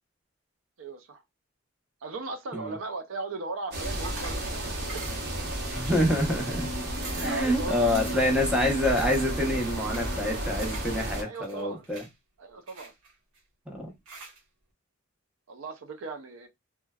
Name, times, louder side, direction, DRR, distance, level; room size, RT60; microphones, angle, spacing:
voice 1, 0.8-1.2 2.0-4.6 4.9-5.0 7.1-8.4 11.2-11.8 12.4-12.9 15.5-16.5, right 3 dB, 70° right, 0.5 m, -37 dB
sound 1, 3.7-11.2, right 1 dB, 50° right, 0.8 m, -33 dB
sound 2, 4.0-4.5 4.9-5.3 5.7-6.3 6.6-6.7 6.9-7.4 7.9-8.4 9.0-9.3 9.9-11.0 11.3-12.1 12.7-13.4 14.1-14.4, right 3 dB, 90° right, 1.0 m, -44 dB
sound 3, 5.1-10.8, left 1 dB, 45° left, 0.4 m, -41 dB
voice 2, 5.7-6.7 7.2-12.0 13.7-13.9, left 1 dB, 5° right, 0.7 m, -27 dB
3.2 x 2.2 x 2.2 m
head